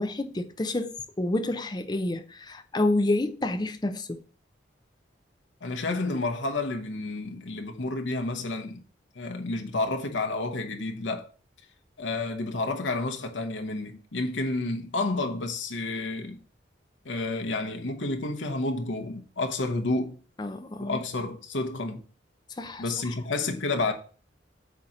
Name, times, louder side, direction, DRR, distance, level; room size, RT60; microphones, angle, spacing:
voice 1, 0.0-4.2 20.4-21.0 22.6-22.8, left 2 dB, 20° left, 0.5 m, -29 dB
voice 2, 5.6-8.8 9.2-11.3 12.0-16.4 17.0-20.2 20.8-22.0 22.8-23.9, left 2 dB, 85° left, 0.9 m, -30 dB
8.2 x 2.9 x 4.9 m
head